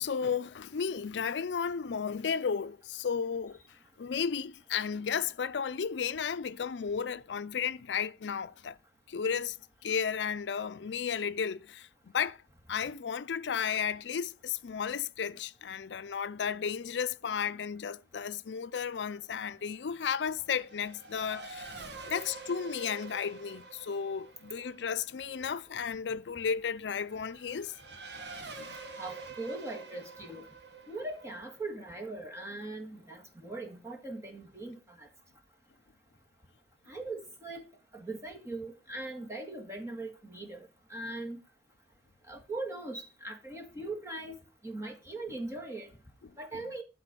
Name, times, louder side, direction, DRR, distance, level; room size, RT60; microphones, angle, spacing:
voice 1, 0.0-3.6 4.0-8.8 9.1-9.6 9.8-12.4 12.7-21.7 22.0-27.7 28.6-28.8, left 7 dB, 85° left, 0.5 m, -33 dB
Race car auto racing / Accelerating revving vroom, 18.9-33.0, right 3 dB, 70° right, 1.6 m, -48 dB
voice 2, 29.0-30.4 30.9-35.1 36.9-37.7 37.9-41.4 42.3-44.4 44.6-45.9 46.4-46.8, right 2 dB, 15° right, 1.9 m, -40 dB
12.0 x 4.2 x 6.8 m
head